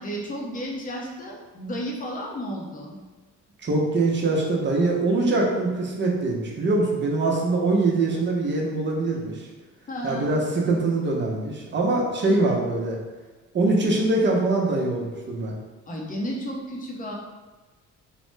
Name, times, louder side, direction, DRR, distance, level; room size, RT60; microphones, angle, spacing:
voice 1, 0.0-3.0 9.9-10.3 15.9-17.1, equal, 25° left, -2 dB, 0.6 m, -33 dB
voice 2, 3.6-9.5 10.0-13.0 13.5-15.5, right 2 dB, 40° right, -1 dB, 0.7 m, -23 dB
3.1 x 2.1 x 3.2 m, 1.3 s
cardioid pair, 90°, 30 cm